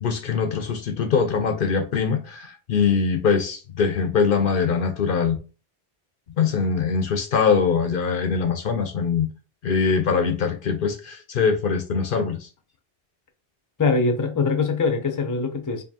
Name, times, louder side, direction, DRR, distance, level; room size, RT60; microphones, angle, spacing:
voice 1, 0.0-5.4 6.4-9.3 9.6-12.5, left 6 dB, 65° left, 0.7 m, -22 dB
voice 2, 13.8-15.8, left 4 dB, 25° left, 0.4 m, -22 dB
4.5 x 2.6 x 2.8 m
omnidirectional pair, 1.1 m